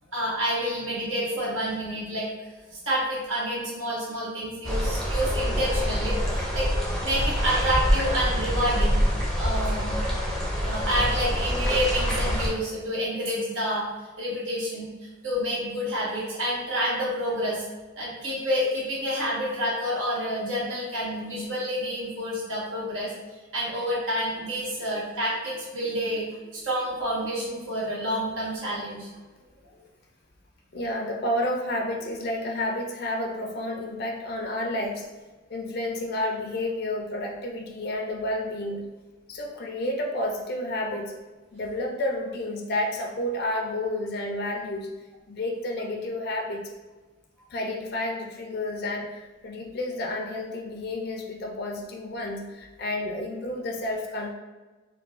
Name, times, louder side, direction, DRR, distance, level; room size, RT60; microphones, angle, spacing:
voice 1, 0.1-2.3 2.7-6.7 7.0-9.0 9.4-9.9 10.6-13.9 14.2-17.6 18.0-23.1 23.5-26.3 26.5-29.1, equal, 85° right, -6 dB, 1.4 m, -28 dB
sound 1, 4.6-12.5, equal, ahead, 0.5 m, -26 dB
voice 2, 30.7-35.2 35.5-38.9 39.3-41.1 41.5-44.9 45.3-46.7 47.5-54.3, left 1 dB, 50° left, 1 dB, 0.4 m, -30 dB
4.4 x 2.2 x 2.5 m, 1.2 s
head